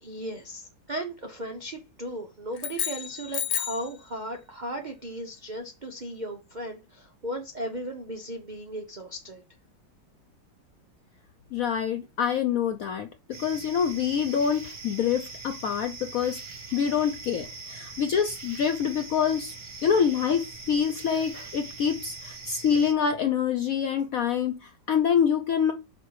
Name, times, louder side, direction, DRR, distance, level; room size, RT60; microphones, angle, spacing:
voice 1, 0.0-9.4, right 1 dB, 75° right, 0.4 m, -36 dB
sound 1, 2.5-3.9, left 9 dB, 60° left, 1.2 m, -31 dB
voice 2, 11.5-13.1 13.4-16.4 16.7-19.5 19.8-25.7, left 7 dB, 75° left, 0.8 m, -26 dB
sound 2, 13.3-22.9, right 3 dB, 35° right, 0.8 m, -42 dB
5.6 x 4.2 x 4.7 m
omnidirectional pair, 2.1 m